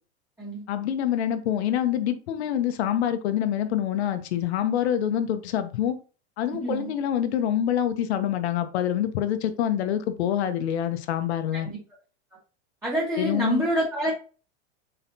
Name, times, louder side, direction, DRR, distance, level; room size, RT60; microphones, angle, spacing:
voice 1, 0.7-6.0 6.4-11.7 13.2-13.6, left 10 dB, 80° left, 0.8 m, -26 dB
voice 2, 6.6-6.9 11.5-11.8 12.8-14.1, right 1 dB, 10° right, 1.5 m, -27 dB
4.3 x 4.1 x 2.7 m
supercardioid pair, 125°, 33 cm